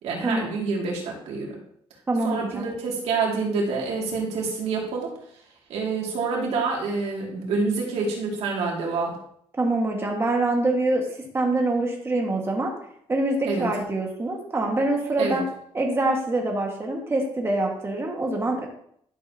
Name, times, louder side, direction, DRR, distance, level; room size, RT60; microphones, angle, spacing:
voice 1, 0.0-1.6 2.2-5.1 5.7-9.2 13.5-13.7 15.2-15.4, right 4 dB, 85° right, -2 dB, 2.5 m, -27 dB
voice 2, 2.1-2.7 9.6-11.1 11.3-12.7 13.1-15.4 15.7-18.7, right 2 dB, 25° right, 0 dB, 1.7 m, -25 dB
11.5 x 7.1 x 2.9 m, 0.67 s
cardioid pair, 120°, 11 cm